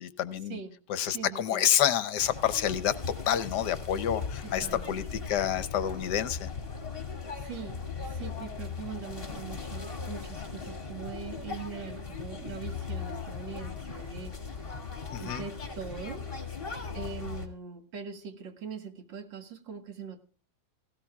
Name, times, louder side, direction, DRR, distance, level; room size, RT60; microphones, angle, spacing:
voice 1, 0.0-0.6 0.9-2.9 3.3-6.5 15.1-15.4, left 10 dB, 70° left, 13 dB, 1.3 m, -28 dB
voice 2, 1.1-1.7 4.4-5.3 7.4-14.7 15.2-16.3 16.9-20.2, right 6 dB, 85° right, 7 dB, 2.2 m, -42 dB
sound 1, 2.2-17.5, left 5 dB, 30° left, 2.4 m, -38 dB
17.5 x 16.0 x 2.3 m, 0.39 s
omnidirectional pair, 2.0 m